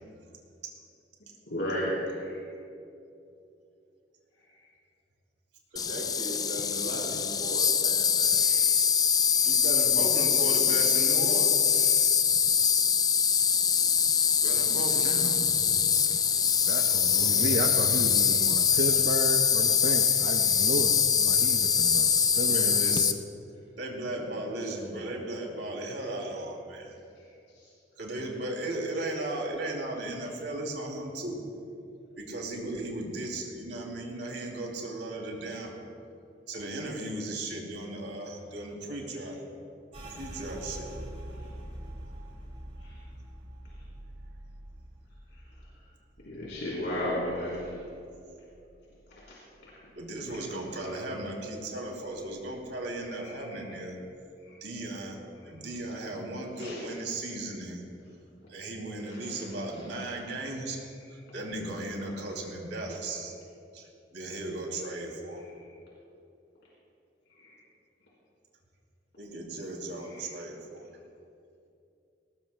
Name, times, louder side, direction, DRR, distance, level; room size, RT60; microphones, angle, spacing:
voice 1, 1.4-2.4 8.2-8.7 11.9-12.0 17.1-17.6 42.8-43.0 46.3-47.8 49.1-49.2 49.6-49.7 50.3-50.4 53.5-53.6 54.4-54.6 56.6-56.8 59.1-59.5 67.4-67.5 70.1-70.3, left 1 dB, 75° left, -7 dB, 3.7 m, -35 dB
voice 2, 5.7-8.4 9.4-11.9 14.4-15.6 17.8-18.0 22.5-23.2 23.8-26.9 28.0-31.4 32.2-35.7 36.5-39.4 40.1-40.9 49.9-54.0 54.6-55.2 55.4-57.8 58.5-60.8 61.1-63.3 63.7-65.4 69.2-70.9, right 1 dB, 75° right, 0 dB, 2.7 m, -36 dB
Insect, 5.8-23.1, left 7 dB, 20° left, 0.4 m, -24 dB
voice 3, 16.7-23.0 24.6-24.7, right 2 dB, 55° right, 2 dB, 0.7 m, -33 dB
sound 1, 39.9-49.3 49.6-50.9 51.2-51.7 52.1-52.7, right 1 dB, 35° right, 2.4 m, -46 dB
19.5 x 19.0 x 2.2 m, 2.6 s
head